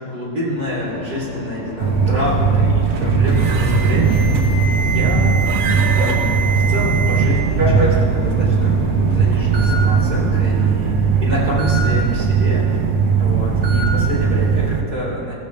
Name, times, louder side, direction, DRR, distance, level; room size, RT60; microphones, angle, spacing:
voice 1, 0.0-4.5 4.8-6.2 6.7-8.7 9.1-12.8 13.2-15.3, equal, 15° right, -8 dB, 2.8 m, -27 dB
sound 1, 0.6-10.5, left 3 dB, 65° left, 2.6 m, -33 dB
sound 2, 1.8-14.8, right 5 dB, 75° right, 1.5 m, -18 dB
Alarm, 3.3-7.2 7.6-8.0 8.8-8.9 9.5-9.7 11.6-11.8 13.6-13.8, right 3 dB, 30° right, 1.0 m, -26 dB
17.0 x 8.3 x 3.3 m, 2.4 s
omnidirectional pair, 4.0 m